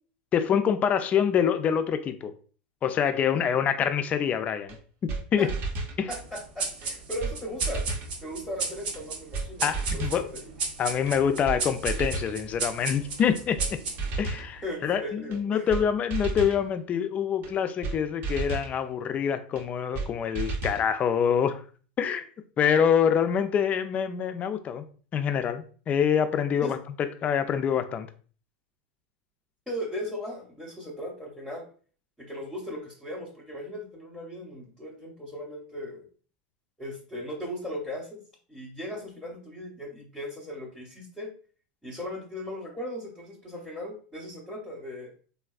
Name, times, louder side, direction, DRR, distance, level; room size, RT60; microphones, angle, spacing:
voice 1, 0.3-2.3 2.8-4.8 5.3-5.5 6.0-6.1 9.6-10.3 10.8-13.8 14.2-21.6 22.0-22.2 22.6-24.9 25.1-28.1, left 8 dB, 30° left, 0.3 m, -26 dB
sound 1, 4.7-4.8 5.1-5.2 5.5-6.0 6.8-6.9 7.2-7.3 7.6-8.1 8.9-9.0 9.3-9.5 9.7-10.2 11.1-11.2 11.4-11.6 11.9-12.3 13.2-13.3 13.6-13.7 14.0-14.5 15.3-15.4 15.7-15.8 16.1-16.6 17.4-17.5 17.8-18.0 18.2-18.7 19.6-19.7 19.9-20.1 20.3-20.8, right 3 dB, 45° right, 0.6 m, -32 dB
voice 2, 6.1-7.8 8.2-10.0 10.3-10.5 14.6-15.7 26.6-26.7 29.7-31.7 32.2-36.1 36.8-38.2 38.5-41.3 41.8-45.1, equal, 5° left, 0.7 m, -37 dB
sound 2, 6.1-15.0, right 4 dB, 85° right, 0.7 m, -35 dB
3.3 x 2.3 x 2.3 m
supercardioid pair, 115°, 5 cm